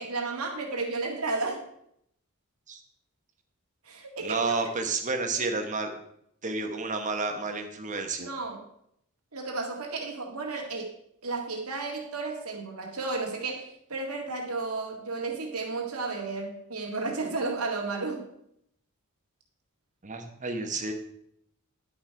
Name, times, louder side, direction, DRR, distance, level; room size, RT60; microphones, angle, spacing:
voice 1, 0.0-1.6 3.9-4.6 8.2-8.6 9.3-10.9 11.2-18.3, right 3 dB, 80° right, 0 dB, 2.0 m, -33 dB
voice 2, 4.2-5.9 6.4-8.3 20.0-20.9, right 3 dB, 35° right, 5 dB, 1.1 m, -30 dB
11.0 x 5.3 x 4.6 m, 0.73 s
head